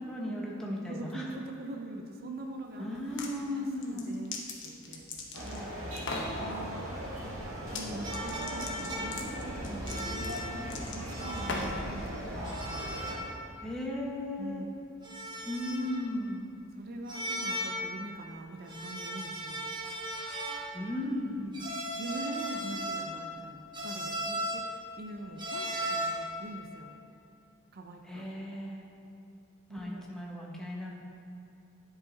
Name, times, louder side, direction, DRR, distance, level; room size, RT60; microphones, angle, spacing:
voice 1, 0.1-1.3 2.8-4.1 13.6-14.6 15.4-16.4 20.7-21.4 28.0-28.8 29.7-30.9, left 1 dB, 5° left, -3 dB, 1.0 m, -36 dB
voice 2, 0.9-3.0 3.5-4.3 4.6-5.1 5.4-5.7 6.4-6.9 7.7-12.8 14.4-14.7 15.8-15.9 16.8-19.7 21.3-21.6 22.0-26.9 27.7-28.3 29.7-30.0, right 1 dB, 50° right, 3 dB, 0.6 m, -43 dB
sound 1, 2.9-3.3 3.8-5.6 6.0-6.3 7.6-7.9 8.1-11.9, left 3 dB, 65° left, 0.9 m, -39 dB
Sound of Kampala, 5.3-13.2, equal, 90° right, 1.7 m, -38 dB
sound 2, 8.0-9.4 9.9-10.6 11.1-11.8 12.4-13.4 13.7-13.8 15.0-16.0 17.1-17.9 18.6-20.7 21.5-23.2 23.7-24.7 25.4-26.3, right 1 dB, 20° right, 1.2 m, -37 dB
10.5 x 4.9 x 4.0 m, 2.7 s
head